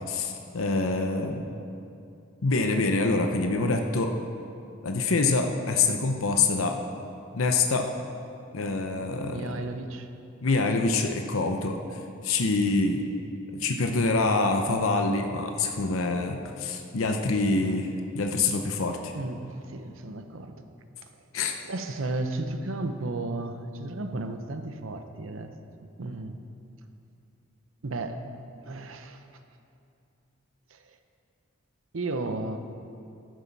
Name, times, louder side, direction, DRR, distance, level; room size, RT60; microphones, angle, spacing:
voice 1, 0.1-1.5 2.4-4.1 4.8-6.8 7.3-7.9 8.5-9.5 10.4-13.0 13.5-17.9 18.1-19.1 21.3-21.6, left 3 dB, 90° left, 4 dB, 0.8 m, -26 dB
voice 2, 9.3-10.1 19.1-20.6 21.0-21.1 21.6-25.5 26.0-26.4 27.8-28.3 28.6-29.2 30.7-31.0 31.9-32.6, right 2 dB, 75° right, 7 dB, 0.8 m, -34 dB
14.0 x 11.5 x 4.1 m, 2.6 s
head